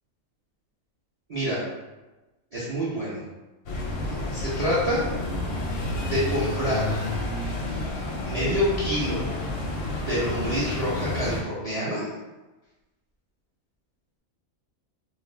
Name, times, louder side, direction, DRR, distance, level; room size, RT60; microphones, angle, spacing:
voice 1, 1.3-1.7 2.5-3.2 4.3-5.1 6.0-7.0 8.2-9.2 10.0-12.1, equal, 50° right, -9 dB, 0.4 m, -27 dB
sound 1, 3.7-11.4, left 2 dB, 65° left, 0.6 m, -30 dB
2.5 x 2.0 x 3.1 m, 1.1 s
omnidirectional pair, 1.4 m